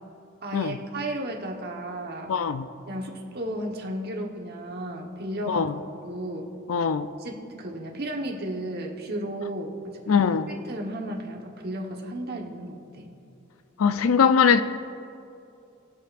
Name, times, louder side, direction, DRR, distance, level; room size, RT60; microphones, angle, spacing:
voice 1, 0.4-2.3 2.9-5.6 6.0-6.5 7.2-13.1, right 1 dB, 50° right, 1.2 m, -34 dB
voice 2, 2.3-2.7 5.5-5.7 6.7-7.1 10.1-10.5 13.8-14.6, left 6 dB, 85° left, 0.4 m, -21 dB
23.0 x 7.9 x 2.5 m
head